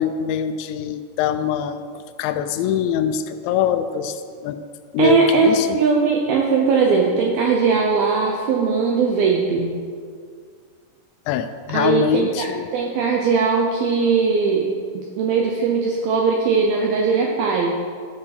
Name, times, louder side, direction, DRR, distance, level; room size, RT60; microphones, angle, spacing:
voice 1, 0.0-1.9 2.2-4.6 4.9-5.7 11.3-12.7, left 9 dB, 85° left, 10 dB, 2.8 m, -23 dB
voice 2, 5.0-9.8 11.7-14.7 14.9-17.8, right 5 dB, 80° right, 0 dB, 2.2 m, -19 dB
13.0 x 6.5 x 5.8 m, 2.1 s
omnidirectional pair, 5.3 m